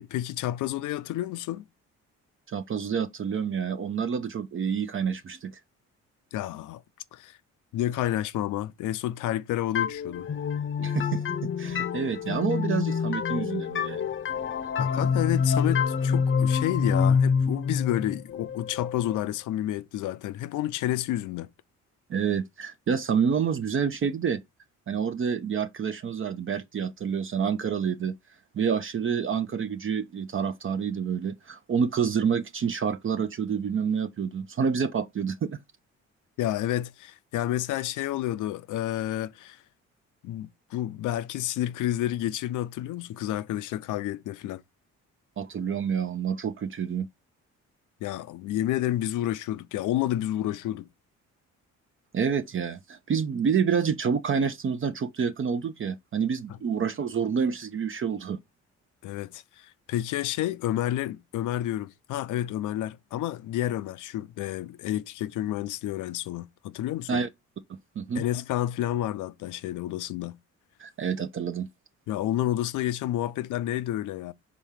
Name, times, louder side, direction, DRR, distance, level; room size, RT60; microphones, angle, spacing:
voice 1, 0.0-1.7 6.3-6.8 7.1-7.4 7.7-10.3 14.8-21.5 36.4-39.6 40.2-44.6 48.0-50.9 59.0-67.2 68.2-70.4 72.1-74.3, left 13 dB, 80° left, 0.6 m, -30 dB
voice 2, 2.5-5.5 10.8-14.0 22.1-24.4 24.9-28.2 28.5-35.6 45.4-47.1 52.1-58.4 67.1-67.3 68.0-68.2 70.8-71.7, right 6 dB, 45° right, 0.7 m, -28 dB
sound 1, 9.8-19.3, left 6 dB, 40° left, 0.7 m, -27 dB
5.2 x 3.6 x 5.7 m
cardioid pair, 90°, 30 cm